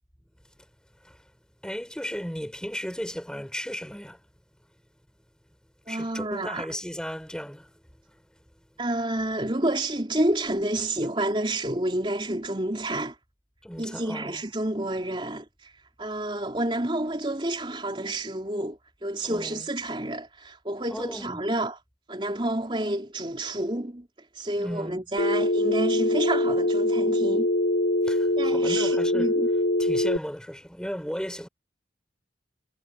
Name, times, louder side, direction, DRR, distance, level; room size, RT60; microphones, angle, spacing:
voice 1, 1.6-4.2 5.9-7.8 8.1-8.2 13.6-14.4 19.2-19.7 20.9-21.4 24.6-25.1 28.1-29.4 29.8-31.5, equal, 5° left, 6.9 m, -35 dB
voice 2, 5.9-6.7 8.8-13.2 13.8-15.7 16.0-21.8 22.1-24.1 24.3-27.5 28.4-29.5, right 1 dB, 25° right, 3.7 m, -29 dB
Telephone, 25.2-30.2, left 1 dB, 70° left, 1.7 m, -23 dB
head